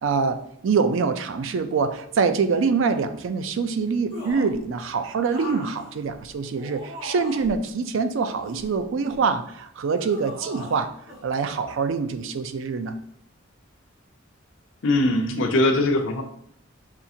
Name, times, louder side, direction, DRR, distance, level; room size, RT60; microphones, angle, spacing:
voice 1, 0.0-10.9 11.2-13.0, right 5 dB, 65° right, 10 dB, 0.4 m, -25 dB
sound 1, 4.1-4.6 5.3-7.6 8.2-9.3 9.9-10.8 11.1-11.2, left 1 dB, 90° right, 1.6 m, -39 dB
voice 2, 14.8-16.2, left 1 dB, 65° left, 5 dB, 0.5 m, -21 dB
5.7 x 2.4 x 2.7 m, 0.70 s
head